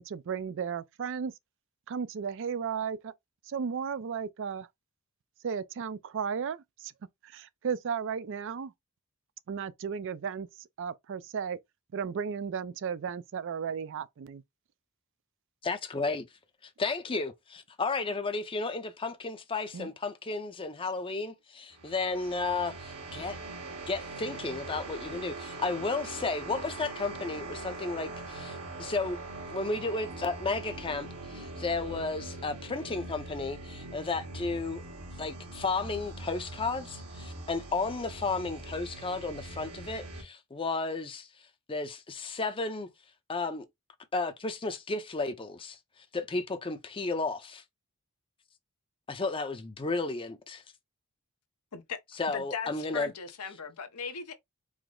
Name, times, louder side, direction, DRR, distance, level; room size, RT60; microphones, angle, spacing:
voice 1, 0.0-1.3 1.9-3.1 3.5-4.7 5.4-6.9 7.3-8.7 9.5-10.5 10.8-11.6 11.9-14.4 19.7-19.9, right 6 dB, 55° right, 0.4 m, -34 dB
voice 2, 15.6-16.3 16.8-23.4 23.9-29.2 29.5-34.8 35.2-41.3 41.7-42.9 43.3-43.6 44.1-45.8 46.1-47.6 49.1-50.6 52.2-53.1, left 3 dB, 25° left, 0.6 m, -33 dB
sound 1, 21.7-40.2, right 2 dB, 90° right, 1.5 m, -42 dB
voice 3, 52.3-54.3, left 6 dB, 85° left, 0.8 m, -38 dB
4.9 x 2.0 x 3.7 m
head